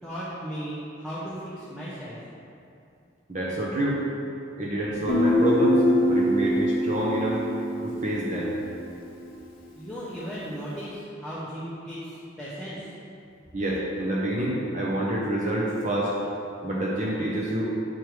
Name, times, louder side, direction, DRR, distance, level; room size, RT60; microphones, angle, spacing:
voice 1, 0.0-2.2 6.1-7.2 9.7-12.9, equal, ahead, -10 dB, 0.8 m, -37 dB
voice 2, 3.3-4.0 4.6-7.4 7.8-8.5 13.5-16.1 16.6-17.6, right 1 dB, 40° right, -4 dB, 0.7 m, -27 dB
Guitar, 5.1-8.7, left 1 dB, 50° left, 0.9 m, -24 dB
7.8 x 3.3 x 4.7 m, 2.6 s
head